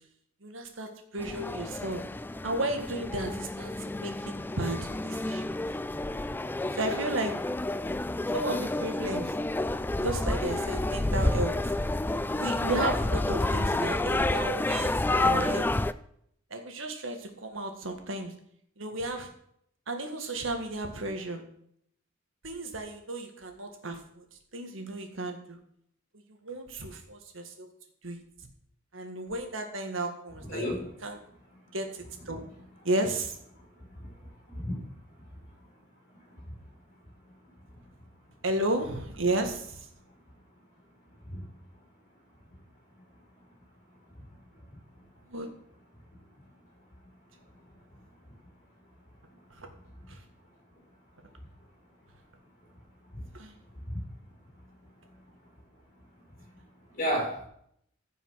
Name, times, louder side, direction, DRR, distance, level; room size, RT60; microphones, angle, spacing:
voice 1, 0.4-2.0 2.4-5.6 6.7-7.3 8.3-9.3 10.0-11.7 12.4-15.7 16.5-18.3 18.8-19.3 19.9-21.4 22.4-24.2 24.5-25.6 26.4-27.7 28.0-28.2 28.9-30.7 31.0-31.2 31.7-31.9 32.3-32.4 32.9-33.3 38.4-39.9 45.3-45.5 49.6-49.7 50.1-50.2 53.3-53.5, right 2 dB, 70° right, 1.8 m, -33 dB
sound 1, 1.2-15.9, left 2 dB, 10° left, 0.3 m, -30 dB
voice 2, 30.5-31.0 33.9-34.8 36.3-36.4 41.2-41.4 50.1-50.2 53.1-53.2 53.8-54.0 56.9-57.5, equal, 40° left, 5.0 m, -33 dB
15.0 x 5.6 x 5.7 m
head